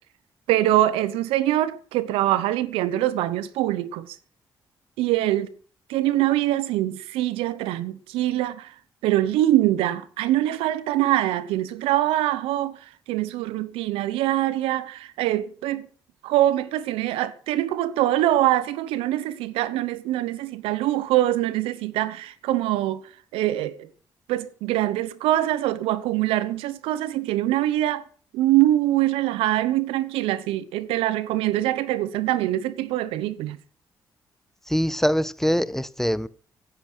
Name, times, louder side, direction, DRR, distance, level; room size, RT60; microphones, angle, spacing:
voice 1, 0.5-4.2 5.0-5.5 5.9-8.7 9.0-12.8 13.1-15.9 16.2-23.0 23.3-23.9 24.3-28.0 28.3-33.6, right 14 dB, 85° right, 0.9 m, -23 dB
voice 2, 34.7-36.3, equal, 5° left, 1.0 m, -23 dB
16.0 x 9.9 x 6.2 m
supercardioid pair, 50°, 9 cm